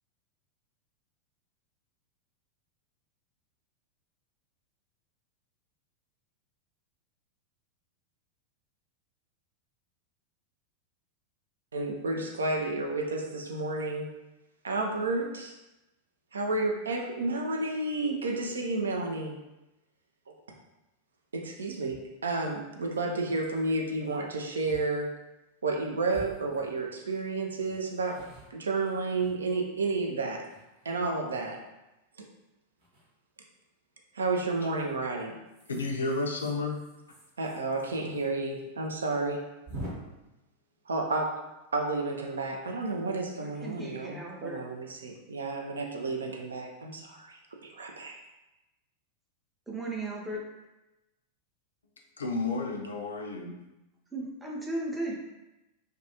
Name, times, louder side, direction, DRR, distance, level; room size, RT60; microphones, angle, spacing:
voice 1, 11.7-14.1 14.6-15.6 16.3-19.4 21.3-25.1 25.6-28.2 28.5-30.4 30.8-31.6 34.1-35.4 37.4-39.4 40.9-41.4 41.7-48.2, right 3 dB, 70° right, 2 dB, 0.3 m, -31 dB
sound 1, 21.9-22.0 22.5-22.6 22.8-23.2 24.1-24.2 24.6-24.9 25.2-25.3 26.1-27.1 27.6-29.8 30.3-31.1 32.8-33.1 34.3-34.7 35.5-38.3 38.5-38.6 38.9-39.0 39.7-39.9, right 1 dB, 45° right, 0.8 m, -47 dB
voice 2, 35.7-36.8 52.2-53.6, left 3 dB, 70° left, 1 dB, 0.3 m, -31 dB
voice 3, 43.4-44.6 49.7-50.4 54.1-55.2, right 2 dB, 5° right, -3 dB, 0.6 m, -36 dB
2.3 x 2.2 x 2.8 m, 0.98 s
figure-of-eight pair, 90°, 0 cm